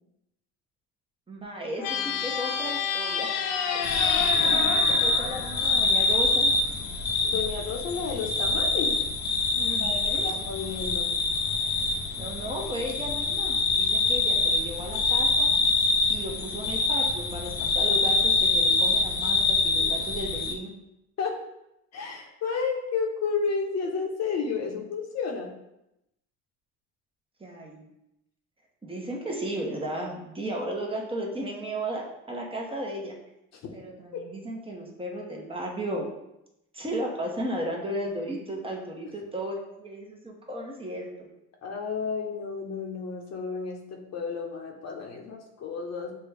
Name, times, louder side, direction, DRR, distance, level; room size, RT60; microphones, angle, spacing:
voice 1, 1.3-3.4 3.7-4.0 4.3-6.5 9.5-10.2 12.2-15.5 16.1-20.7 27.4-27.8 28.8-33.1 33.7-36.1 36.7-41.3, right 1 dB, 15° right, -1 dB, 0.9 m, -35 dB
sound 1, 1.8-6.2, left 7 dB, 75° left, 0.6 m, -30 dB
sound 2, 3.8-20.5, left 3 dB, 30° left, 0.5 m, -25 dB
voice 2, 4.3-4.6 7.2-9.0 9.8-11.1 21.2-21.4 21.9-25.5 33.5-33.7 41.6-46.1, left 5 dB, 50° left, 2 dB, 0.8 m, -32 dB
6.7 x 2.3 x 3.3 m, 0.86 s
cardioid pair, 105°, 33 cm